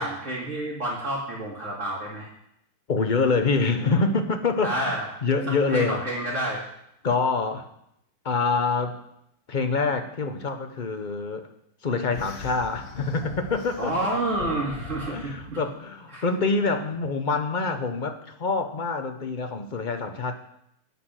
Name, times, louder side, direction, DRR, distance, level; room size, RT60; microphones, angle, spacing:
voice 1, 0.0-2.3 4.6-5.1 5.7-6.6 13.8-15.6 16.1-16.2, right 1 dB, 45° right, -4 dB, 2.7 m, -29 dB
voice 2, 2.9-6.0 7.0-7.7 8.2-9.0 9.5-11.5 11.8-13.9 15.1-20.3, left 4 dB, 35° left, 7 dB, 0.8 m, -26 dB
sound 1, 12.1-15.6, left 5 dB, 55° left, 1.4 m, -40 dB
9.9 x 9.0 x 6.3 m, 0.77 s
omnidirectional pair, 1.8 m